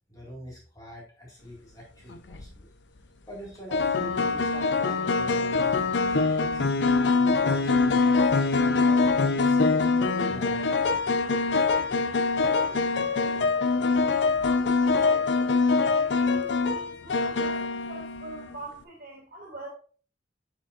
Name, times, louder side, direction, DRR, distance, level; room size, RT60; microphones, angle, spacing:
voice 1, 0.1-2.7 3.3-6.6 7.2-9.6 10.0-11.0, equal, 20° left, 2.0 m, -43 dB
sound 1, 2.1-2.5 3.7-18.5, left 4 dB, 80° left, 0.6 m, -24 dB
voice 2, 12.5-15.6 16.0-19.7, right 2 dB, 55° right, 2.1 m, -44 dB
10.5 x 5.2 x 2.5 m
head